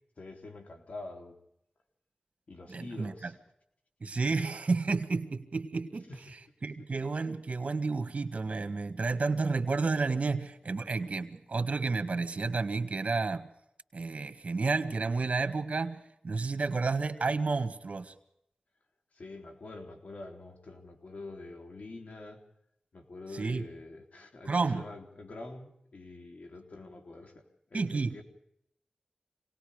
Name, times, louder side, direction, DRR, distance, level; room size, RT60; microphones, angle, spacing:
voice 1, 0.2-1.4 2.5-3.3 6.1-6.4 6.8-6.9 19.1-22.4 22.9-28.2, left 2 dB, 75° left, 3 dB, 3.8 m, -46 dB
voice 2, 2.7-3.3 4.0-6.1 6.6-13.5 13.9-18.1 23.4-23.7 24.5-24.8 27.7-28.2, right 4 dB, 65° right, 8 dB, 1.9 m, -31 dB
27.0 x 19.5 x 5.1 m, 0.76 s
wide cardioid pair, 55°, 2 cm